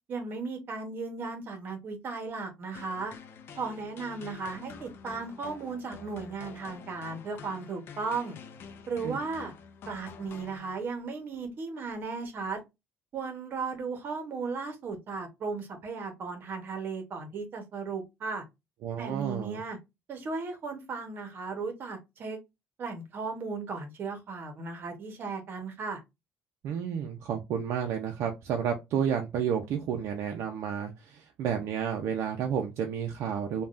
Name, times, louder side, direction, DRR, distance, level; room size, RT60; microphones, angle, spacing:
voice 1, 0.1-3.1 3.6-8.4 8.9-9.5 9.9-12.6 13.1-18.4 19.0-19.8 20.1-22.4 22.8-26.0, right 4 dB, 45° right, 0.9 m, -36 dB
sound 1, 2.7-11.1, left 6 dB, 50° left, 0.5 m, -48 dB
voice 2, 18.8-19.6 26.6-33.6, right 8 dB, 65° right, 0.4 m, -31 dB
3.3 x 2.2 x 2.5 m
cardioid pair, 135°, 5 cm